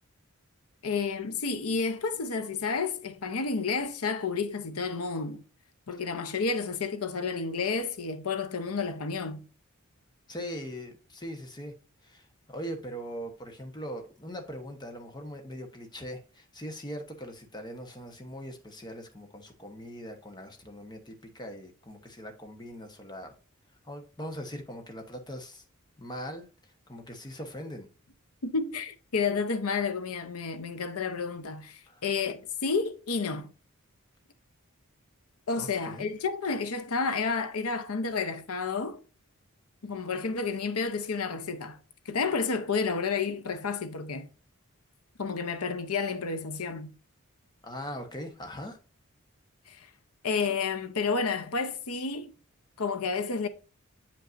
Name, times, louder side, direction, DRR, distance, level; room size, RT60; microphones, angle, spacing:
voice 1, 0.8-5.4 5.9-9.4 28.4-33.5 35.5-39.0 39.8-41.8 42.1-44.3 45.2-46.9 49.7-49.9 50.2-52.3 52.8-53.5, left 4 dB, 90° left, 0.8 m, -30 dB
voice 2, 10.3-11.7 12.0-23.3 23.8-25.6 26.0-27.9 31.9-32.0 35.6-36.1 47.6-48.8, equal, 20° left, 1.1 m, -41 dB
8.8 x 5.3 x 2.6 m
head